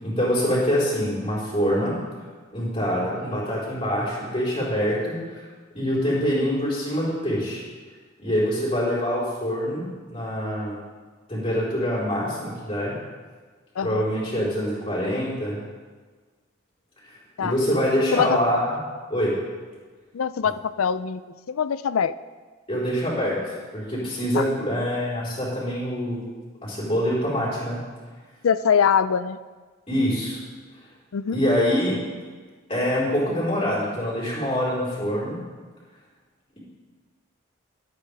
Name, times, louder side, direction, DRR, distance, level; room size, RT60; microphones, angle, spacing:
voice 1, 0.0-1.9 2.5-5.4 5.7-7.6 8.2-9.8 10.1-10.8 11.3-12.9 13.8-15.6 17.0-17.1 17.4-18.8 19.1-19.3 22.7-23.4 23.7-26.3 26.6-27.8 29.9-30.4 31.3-32.0 32.7-35.4, equal, 25° left, -8 dB, 4.4 m, -25 dB
voice 2, 13.8-14.1 17.4-17.5 18.1-18.4 20.1-21.2 21.5-22.1 24.3-24.4 28.4-29.4 31.1-31.4, left 7 dB, 85° left, 15 dB, 0.4 m, -23 dB
22.0 x 8.9 x 3.5 m, 1.4 s
head